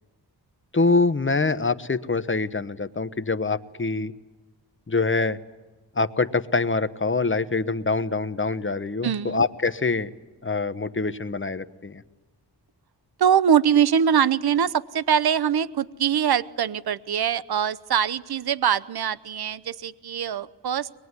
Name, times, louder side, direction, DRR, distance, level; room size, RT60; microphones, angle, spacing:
voice 1, 0.7-4.1 4.9-5.4 5.9-10.1 10.4-12.0, left 3 dB, 30° left, 12 dB, 1.1 m, -25 dB
voice 2, 9.0-9.4 13.2-20.9, right 8 dB, 60° right, 17 dB, 0.8 m, -23 dB
23.0 x 21.0 x 9.7 m, 1.2 s
wide cardioid pair, 85°, 42 cm